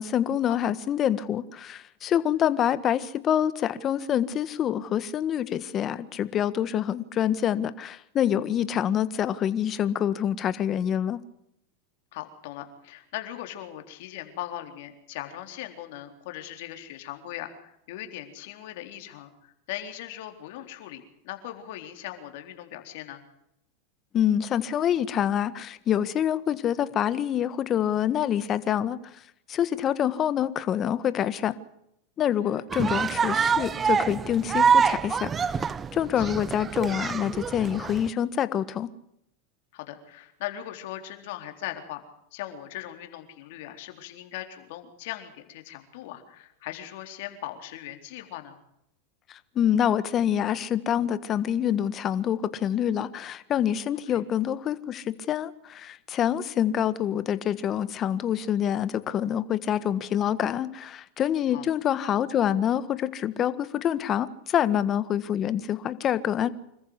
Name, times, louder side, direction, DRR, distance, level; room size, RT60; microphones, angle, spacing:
voice 1, 0.0-11.2 24.1-29.0 29.5-31.5 32.2-35.6 35.9-38.9 49.3-66.5, left 10 dB, 35° left, 14 dB, 1.5 m, -26 dB
voice 2, 12.1-23.2 32.4-32.6 36.2-36.4 39.7-42.0 42.3-48.6 54.1-54.2 61.5-61.7, left 13 dB, 65° left, 6 dB, 3.9 m, -39 dB
sound 1, 32.7-38.1, right 6 dB, 25° right, 0.9 m, -25 dB
26.0 x 14.5 x 8.1 m, 0.78 s
hypercardioid pair, 115°, 0 cm